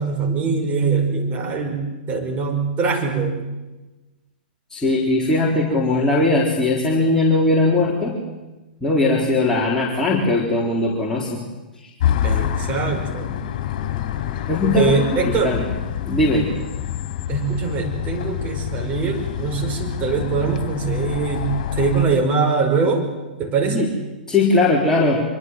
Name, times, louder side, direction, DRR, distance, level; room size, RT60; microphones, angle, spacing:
voice 1, 0.0-3.4 12.2-13.3 14.8-15.6 17.3-23.1 23.4-23.9, right 4 dB, 30° right, 3 dB, 5.5 m, -22 dB
voice 2, 4.7-8.1 8.8-11.4 14.5-15.0 15.4-15.6 16.0-16.5 23.7-23.9 24.3-25.2, left 2 dB, 10° left, -5 dB, 4.1 m, -19 dB
sound 1, 12.0-22.0, left 10 dB, 45° left, 3.6 m, -26 dB
24.5 x 24.0 x 7.7 m, 1.1 s
figure-of-eight pair, 105°, 5 cm